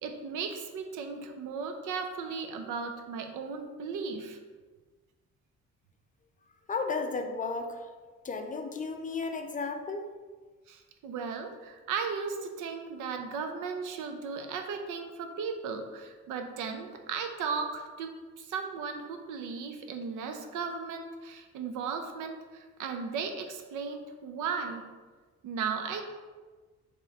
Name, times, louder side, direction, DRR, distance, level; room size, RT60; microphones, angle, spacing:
voice 1, 0.0-4.4 10.7-24.8 25.4-26.0, right 5 dB, 85° right, 5 dB, 0.5 m, -36 dB
voice 2, 6.7-7.8 8.2-10.1, left 4 dB, 25° left, 5 dB, 0.4 m, -33 dB
3.3 x 2.9 x 3.5 m, 1.3 s
cardioid pair, 90°, 30 cm